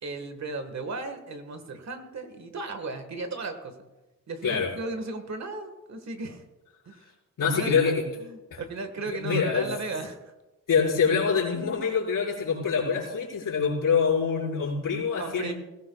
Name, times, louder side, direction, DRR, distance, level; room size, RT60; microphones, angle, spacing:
voice 1, 0.0-3.7 4.3-6.4 6.8-6.9 7.4-7.8 8.2-10.2 15.2-15.5, right 3 dB, 55° right, 7 dB, 1.6 m, -35 dB
voice 2, 7.4-8.0 8.5-8.6 9.1-9.7 10.7-15.5, left 6 dB, 80° left, -5 dB, 4.9 m, -25 dB
19.5 x 16.5 x 2.3 m, 1.1 s
wide cardioid pair, 115°, 32 cm